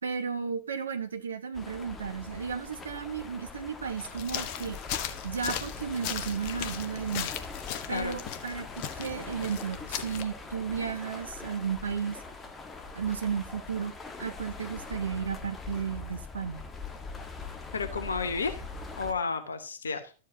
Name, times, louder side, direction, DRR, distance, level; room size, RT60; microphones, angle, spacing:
voice 1, 0.0-4.8 5.2-7.3 7.9-12.2 12.9-13.9 14.2-16.6, right 6 dB, 70° right, 1.2 m, -34 dB
sound 1, 1.5-19.1, left 4 dB, 15° left, 1.5 m, -42 dB
sound 2, 4.0-10.2, left 10 dB, 45° left, 1.1 m, -38 dB
voice 2, 17.7-18.6 19.0-20.1, left 4 dB, 70° left, 1.0 m, -32 dB
12.5 x 7.6 x 2.8 m
figure-of-eight pair, 90°, 0 cm